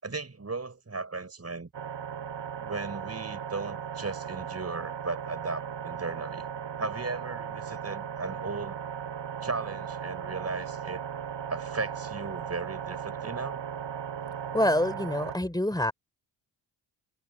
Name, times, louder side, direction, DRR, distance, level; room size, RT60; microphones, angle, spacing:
voice 1, 0.0-1.7 2.6-6.5 6.8-8.8 9.4-11.0 11.5-13.6, right 3 dB, 30° right, 6.4 m, -36 dB
sound 1, 1.7-15.4, right 8 dB, 65° right, 7.6 m, -37 dB
voice 2, 14.5-15.9, left 1 dB, 10° left, 3.5 m, -26 dB
supercardioid pair, 45°, 47 cm